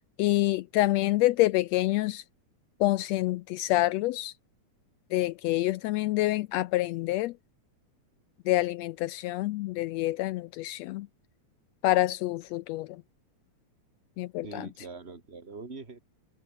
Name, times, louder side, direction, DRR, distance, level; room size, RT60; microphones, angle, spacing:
voice 1, 0.2-2.2 2.8-4.3 5.1-7.3 8.5-11.1 11.8-13.0 14.2-14.7, left 17 dB, 80° left, 1.5 m, -27 dB
voice 2, 14.4-16.0, right 4 dB, 20° right, 3.3 m, -43 dB
omnidirectional pair, 3.4 m